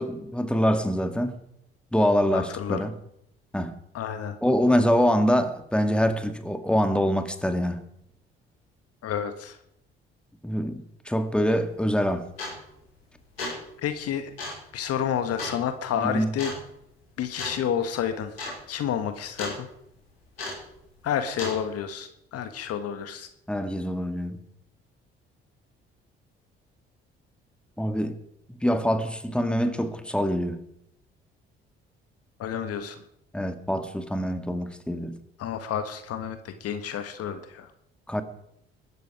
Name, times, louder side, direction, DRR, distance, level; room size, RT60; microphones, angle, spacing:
voice 1, 0.0-1.4 1.9-2.9 3.5-3.7 4.4-7.8 10.4-12.3 16.0-16.3 23.5-24.4 27.8-28.1 28.6-30.6 33.3-35.2 38.1-38.2, equal, 5° left, 2.1 m, -25 dB
voice 2, 2.3-2.8 3.9-4.3 9.0-9.6 13.8-14.3 14.7-16.5 17.2-18.3 18.7-19.7 21.0-23.3 32.4-32.9 35.4-37.7, left 9 dB, 55° left, 1.6 m, -30 dB
sound 1, 11.5-11.6 12.4-12.8 13.2-13.7 14.4-14.7 15.4-15.6 16.4-16.6 17.4-17.6 17.9-18.0 18.3-18.6 18.8-19.6 20.4-20.7 21.4-21.6, left 2 dB, 85° left, 5.8 m, -34 dB
22.0 x 12.5 x 4.9 m
figure-of-eight pair, 45°, 30 cm